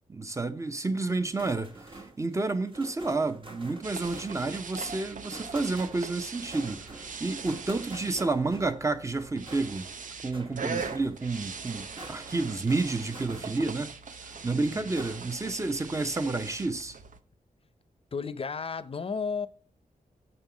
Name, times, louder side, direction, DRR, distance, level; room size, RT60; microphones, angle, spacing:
voice 1, 0.1-9.9 10.2-13.9 14.4-17.0, right 3 dB, 20° right, 0.8 m, -30 dB
sound 1, 1.1-13.9 14.3-15.5, right 2 dB, 35° right, 1.3 m, -47 dB
sound 2, 3.8-17.2, right 5 dB, 65° right, 0.7 m, -41 dB
voice 2, 14.5-14.9 18.1-19.5, left 5 dB, 40° left, 0.6 m, -33 dB
6.7 x 5.5 x 7.2 m
wide cardioid pair, 135°, 14 cm